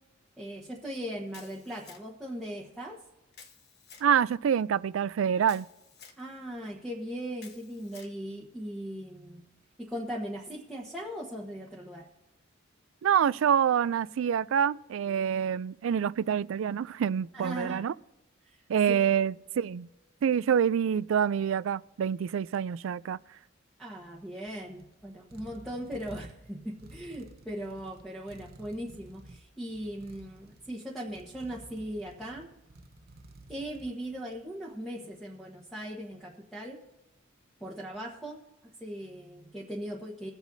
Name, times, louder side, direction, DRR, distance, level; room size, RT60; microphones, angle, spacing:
voice 1, 0.4-3.0 6.2-9.4 9.9-12.1 17.3-17.8 18.4-18.6 23.8-32.5 33.5-36.8 37.6-38.4 38.8-40.3, equal, ahead, 1.2 m, -39 dB
Camera, 1.3-2.3 3.3-4.1 5.4-6.2 7.4-8.1, left 6 dB, 55° left, 1.3 m, -52 dB
voice 2, 4.0-5.7 13.0-17.9 18.7-19.9 20.2-23.2, right 8 dB, 75° right, 0.3 m, -26 dB
sound 1, 24.0-34.6, right 2 dB, 50° right, 0.8 m, -53 dB
22.5 x 8.0 x 2.7 m
head